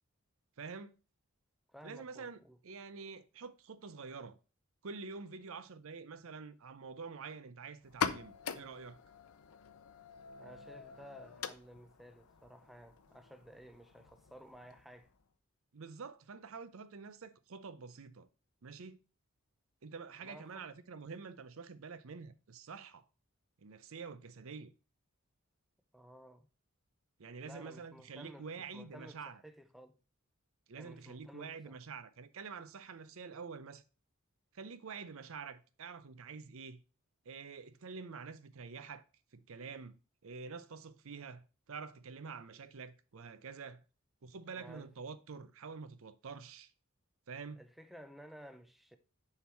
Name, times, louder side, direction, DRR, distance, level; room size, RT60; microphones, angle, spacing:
voice 1, 0.6-0.9 1.8-4.4 4.8-9.0 15.7-18.3 18.6-19.0 19.8-23.1 23.6-24.7 27.2-29.4 30.7-33.8 34.5-36.8 37.3-39.0 39.3-43.8 44.2-46.7 47.3-47.6, right 5 dB, 65° right, 0.6 m, -47 dB
voice 2, 1.7-2.6 10.4-15.1 20.2-20.7 25.9-26.5 27.4-30.0 30.8-31.8 44.5-44.9 47.6-49.0, equal, ahead, 0.5 m, -55 dB
sound 1, 7.8-15.3, left 6 dB, 85° left, 0.6 m, -44 dB
6.9 x 4.6 x 4.4 m
head